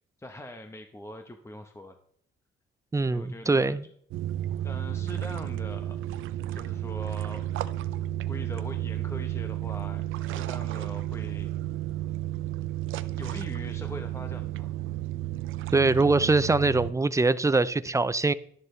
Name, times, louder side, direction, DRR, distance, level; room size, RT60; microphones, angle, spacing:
voice 1, 0.2-2.0 3.1-3.8 4.6-6.1 6.5-7.5 8.3-11.5 11.8-12.1 13.2-14.7, left 1 dB, 15° left, 1.0 m, -42 dB
voice 2, 2.9-3.8 15.7-18.3, right 3 dB, 15° right, 0.5 m, -23 dB
sound 1, 4.1-16.9, right 13 dB, 85° right, 0.6 m, -32 dB
12.0 x 11.0 x 3.3 m
cardioid pair, 90°, 20 cm